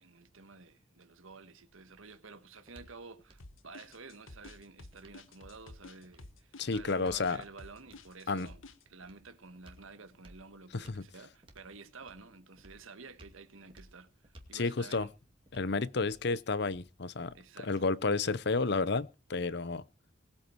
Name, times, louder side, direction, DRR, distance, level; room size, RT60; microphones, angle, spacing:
voice 1, 0.0-15.1 17.3-17.8, right 4 dB, 85° right, 1.6 m, -51 dB
sound 1, 1.7-17.6, right 1 dB, 25° right, 2.4 m, -61 dB
sound 2, 3.4-8.8, left 2 dB, 80° left, 1.5 m, -51 dB
voice 2, 6.6-7.4 8.3-8.5 10.7-11.0 14.5-15.1 15.5-17.3 17.6-19.8, left 3 dB, 55° left, 0.7 m, -31 dB
20.5 x 8.7 x 4.6 m
head